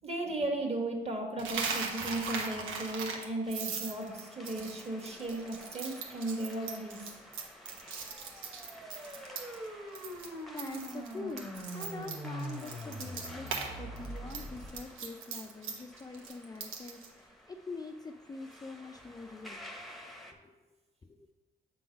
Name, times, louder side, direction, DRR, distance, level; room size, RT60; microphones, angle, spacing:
voice 1, 0.0-7.1, right 2 dB, 30° right, 2 dB, 1.6 m, -36 dB
Coin (dropping), 1.4-9.7 9.9-10.3 10.6-13.7 14.0-17.1, right 5 dB, 90° right, 1.1 m, -39 dB
sound 1, 2.0-20.3, equal, ahead, 0.9 m, -52 dB
sound 2, 7.9-14.8, right 1 dB, 15° right, 1.2 m, -43 dB
voice 2, 10.5-19.6 20.3-20.5 21.0-21.3, left 3 dB, 20° left, 4 dB, 0.4 m, -44 dB
7.5 x 3.8 x 5.2 m, 1.2 s
cardioid pair, 90°, 20 cm